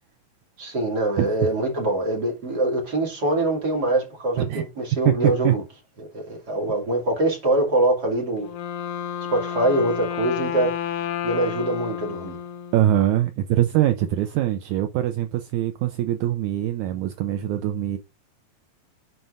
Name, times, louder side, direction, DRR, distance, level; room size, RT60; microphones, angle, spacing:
voice 1, 0.6-5.6 6.1-8.5 9.3-10.7 11.2-12.4, right 1 dB, 30° right, 2.5 m, -23 dB
voice 2, 1.2-1.5 4.4-4.6 5.1-5.5 12.7-18.0, right 12 dB, 80° right, 1.7 m, -23 dB
Wind instrument woodwind instrument, 8.4-13.2, left 9 dB, 85° left, 2.6 m, -31 dB
11.0 x 4.5 x 2.5 m
omnidirectional pair, 3.9 m